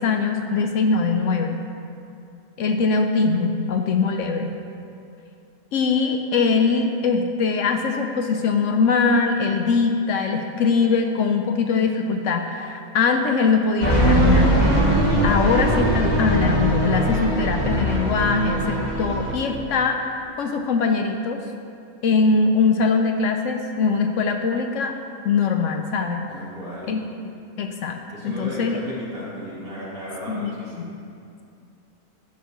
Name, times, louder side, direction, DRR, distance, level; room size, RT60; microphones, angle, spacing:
voice 1, 0.0-1.6 2.6-4.5 5.7-14.7 15.2-21.4 22.0-24.9 25.2-26.3 26.9-27.0 27.6-28.0 28.2-28.8 30.3-30.5, left 4 dB, 65° left, 4 dB, 0.8 m, -22 dB
sound 1, 13.8-19.3, right 1 dB, 30° right, 1.3 m, -20 dB
voice 2, 26.3-27.0 28.1-30.9, equal, 70° right, -8 dB, 2.8 m, -34 dB
13.5 x 6.5 x 3.1 m, 2.5 s
omnidirectional pair, 1.5 m